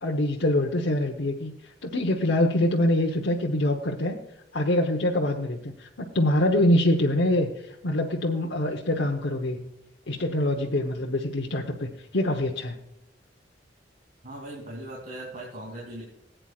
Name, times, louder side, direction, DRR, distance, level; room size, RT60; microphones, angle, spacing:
voice 1, 0.0-4.2 4.5-9.6 10.1-12.8, left 1 dB, 80° left, 0 dB, 1.0 m, -25 dB
voice 2, 14.2-16.0, right 1 dB, 50° right, -4 dB, 2.8 m, -39 dB
19.0 x 9.0 x 2.4 m, 0.84 s
head